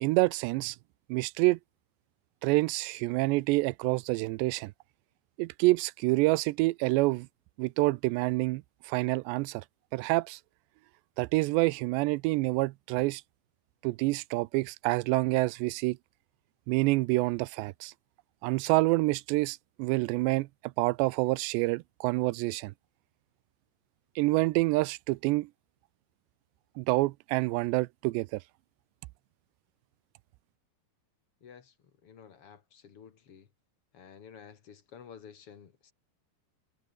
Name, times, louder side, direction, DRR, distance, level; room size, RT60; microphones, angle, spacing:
voice 1, 0.0-0.8 1.1-1.6 2.4-4.7 5.4-7.3 7.6-9.6 9.9-10.4 11.2-13.2 13.8-16.0 16.7-17.9 18.4-22.7 24.2-25.5 26.8-28.4, right 22 dB, 80° right, 2.7 m, -27 dB
voice 2, 31.4-31.7 32.0-33.5 33.9-35.9, left 7 dB, 45° left, 1.9 m, -51 dB
omnidirectional pair, 5.2 m